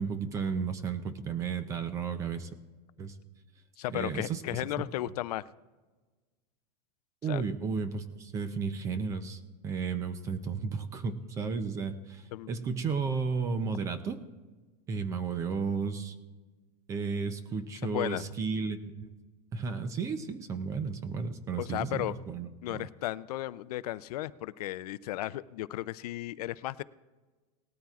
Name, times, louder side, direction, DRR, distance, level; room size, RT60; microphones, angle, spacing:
voice 1, 0.0-2.5 3.0-3.2 3.9-4.6 7.2-14.2 14.9-16.2 16.9-19.1 19.5-22.8, right 5 dB, 15° right, 11 dB, 0.4 m, -33 dB
voice 2, 3.8-5.4 7.3-7.4 12.3-12.5 17.8-18.2 21.6-22.2 22.6-26.8, left 15 dB, 65° left, 16 dB, 0.4 m, -35 dB
18.5 x 13.0 x 2.4 m, 1.3 s
supercardioid pair, 170°, 21 cm